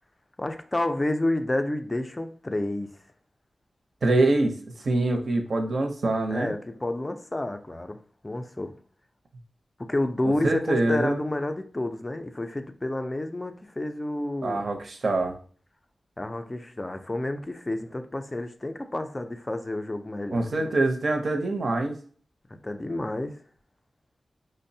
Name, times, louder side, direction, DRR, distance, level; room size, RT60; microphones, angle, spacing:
voice 1, 0.4-3.0 6.3-8.7 9.8-14.6 16.2-20.8 22.6-23.4, left 1 dB, 20° left, 0.3 m, -30 dB
voice 2, 4.0-6.5 10.2-11.2 14.4-15.4 20.3-22.0, right 2 dB, 60° right, 0.6 m, -25 dB
5.1 x 2.0 x 2.6 m
wide cardioid pair, 115°, 0 cm